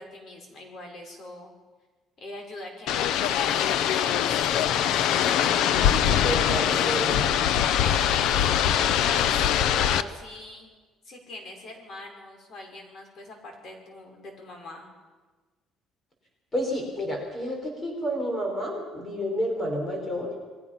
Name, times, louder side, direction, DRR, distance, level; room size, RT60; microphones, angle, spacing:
voice 1, 0.0-1.5 2.2-4.7 7.7-10.7 11.0-14.9, left 1 dB, 45° left, 2 dB, 6.0 m, -42 dB
sound 1, 2.9-10.0, left 9 dB, 70° left, 0.9 m, -23 dB
voice 2, 5.8-7.6 16.5-20.3, equal, 20° left, 1 dB, 5.0 m, -30 dB
29.0 x 21.5 x 5.9 m, 1.3 s
cardioid pair, 160°, 0 cm